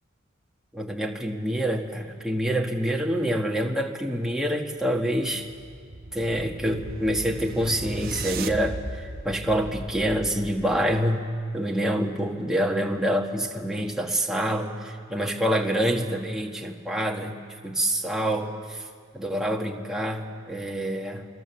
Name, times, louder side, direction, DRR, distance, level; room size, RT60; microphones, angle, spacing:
voice 1, 0.7-5.5 6.1-11.3 11.5-17.4 17.6-18.9 19.1-21.3, equal, 5° right, 0 dB, 1.5 m, -26 dB
sound 1, 5.2-11.2, right 2 dB, 45° right, 1.0 m, -37 dB
25.5 x 22.0 x 7.1 m, 2.2 s
head